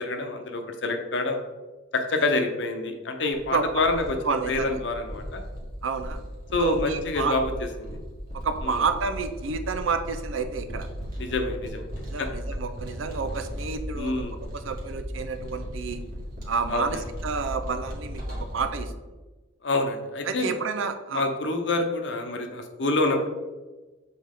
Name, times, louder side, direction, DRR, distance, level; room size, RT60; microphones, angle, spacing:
voice 1, 0.0-1.4 1.9-4.2 4.5-5.4 6.5-7.5 7.8-8.0 8.6-8.8 11.2-11.8 12.2-12.3 14.0-14.3 16.7-17.0 19.6-20.5 21.1-23.3, left 2 dB, 65° left, 5 dB, 0.7 m, -27 dB
sound 1, 3.3-18.7, equal, 45° right, 1.8 m, -37 dB
voice 2, 4.2-4.8 5.8-6.2 6.6-7.4 8.3-10.9 12.0-16.0 16.5-18.9 20.3-21.2, right 5 dB, 85° right, 9 dB, 0.6 m, -30 dB
7.4 x 4.2 x 3.6 m, 1.2 s
head